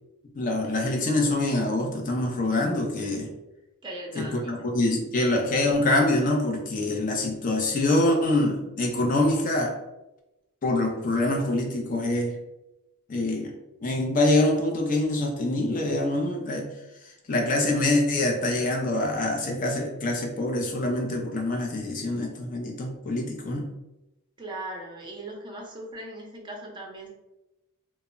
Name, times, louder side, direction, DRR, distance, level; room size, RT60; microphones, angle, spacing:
voice 1, 0.4-3.3 4.1-9.7 10.6-12.3 13.1-13.5 13.8-16.7 17.3-23.7, left 2 dB, 35° left, 1 dB, 0.5 m, -25 dB
voice 2, 3.8-4.6 24.4-27.1, right 1 dB, 20° right, -1 dB, 0.6 m, -39 dB
2.1 x 2.0 x 3.6 m, 0.96 s
head